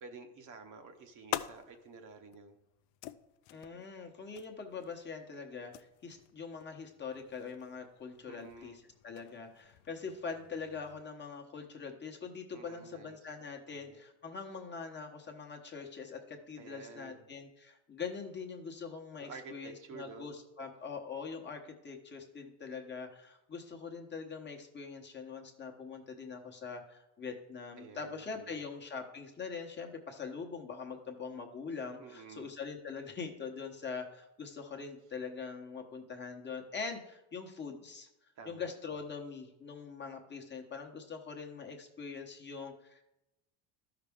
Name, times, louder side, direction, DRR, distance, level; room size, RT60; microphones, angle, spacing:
voice 1, 0.0-2.6 8.2-8.9 12.5-13.2 13.7-14.0 16.6-17.3 19.2-20.3 27.8-28.6 32.0-32.5 38.4-38.7, right 4 dB, 45° right, 5 dB, 1.1 m, -50 dB
sound 1, 0.6-11.0, left 14 dB, 80° left, 0.6 m, -48 dB
voice 2, 3.5-38.1 38.4-43.0, left 5 dB, 25° left, 2 dB, 1.1 m, -43 dB
12.5 x 5.9 x 3.6 m, 0.92 s
cardioid pair, 130°, 44 cm